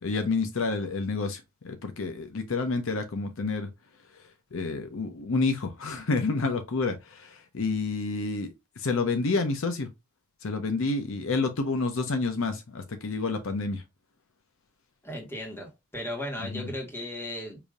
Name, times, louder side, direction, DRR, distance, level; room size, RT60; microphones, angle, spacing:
voice 1, 0.0-3.7 4.5-9.9 10.4-13.8 16.5-16.7, left 3 dB, 65° left, 0.6 m, -29 dB
voice 2, 15.0-17.6, left 1 dB, 10° left, 1.4 m, -36 dB
4.8 x 2.7 x 2.4 m
head